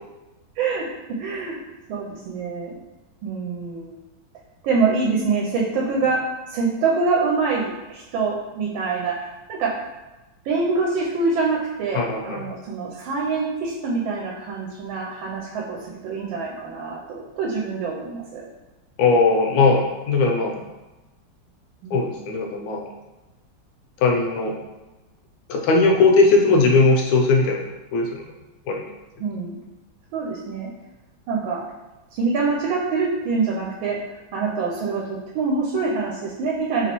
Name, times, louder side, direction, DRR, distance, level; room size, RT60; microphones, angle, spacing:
voice 1, 0.6-1.6 1.9-2.8 3.2-4.0 4.6-9.8 10.4-18.5 21.8-22.0 29.2-29.6 30.1-30.7 31.3-31.6 32.1-36.9, right 4 dB, 80° right, -2 dB, 1.3 m, -25 dB
voice 2, 11.9-12.4 19.0-20.6 21.9-22.8 24.0-24.5 25.5-27.6 27.9-28.2 28.7-28.8, left 3 dB, 75° left, 0 dB, 1.2 m, -18 dB
3.2 x 3.0 x 2.9 m, 1.1 s
omnidirectional pair, 2.2 m